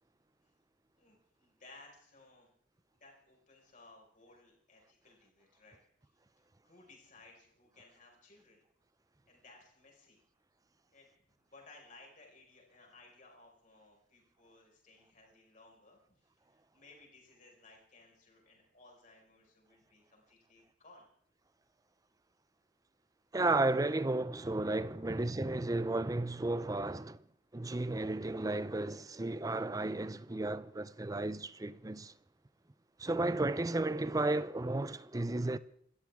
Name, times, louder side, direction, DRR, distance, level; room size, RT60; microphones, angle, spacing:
voice 1, 1.0-2.5 3.0-5.8 6.6-8.6 9.3-10.2 10.9-11.1 11.4-21.1 25.0-25.3, left 2 dB, 40° left, 5.2 m, -60 dB
voice 2, 23.3-27.2 27.5-32.1 33.0-35.6, right 2 dB, 20° right, 0.5 m, -33 dB
27.0 x 13.5 x 3.6 m
head